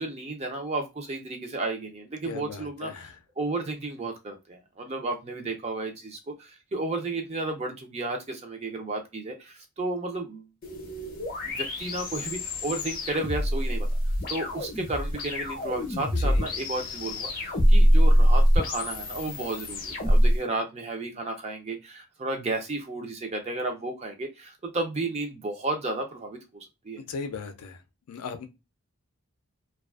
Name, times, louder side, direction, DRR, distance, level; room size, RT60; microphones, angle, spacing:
voice 1, 0.0-3.1 3.4-10.5 11.4-13.9 14.3-27.0, right 2 dB, 30° right, 0.4 m, -33 dB
voice 2, 2.3-3.2 15.9-16.5 27.0-27.8 28.1-28.5, left 5 dB, 85° left, 0.4 m, -38 dB
sound 1, 10.6-20.4, equal, 40° left, 0.6 m, -24 dB
2.4 x 2.3 x 2.3 m
head